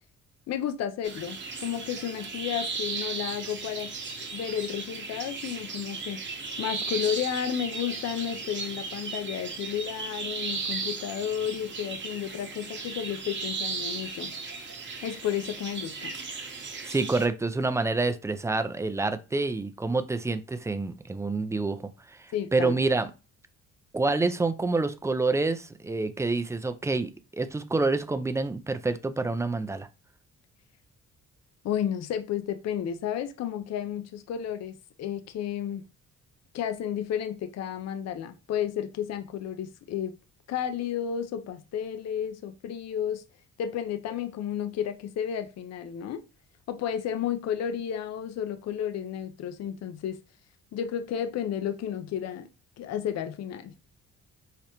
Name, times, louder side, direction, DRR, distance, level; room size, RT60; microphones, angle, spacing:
voice 1, 0.5-3.9 4.3-6.2 6.6-14.3 15.0-16.1 22.3-22.7 31.6-35.8 36.5-40.1 40.5-43.2 43.6-46.2 46.7-50.2 50.7-52.5 52.8-53.7, left 9 dB, 60° left, 0.5 m, -32 dB
sound 1, 1.0-17.3, right 4 dB, 40° right, 0.9 m, -36 dB
voice 2, 16.9-21.8 22.1-23.1 23.9-29.9, right 3 dB, 10° right, 0.3 m, -27 dB
4.9 x 2.0 x 2.9 m
cardioid pair, 90°, 30 cm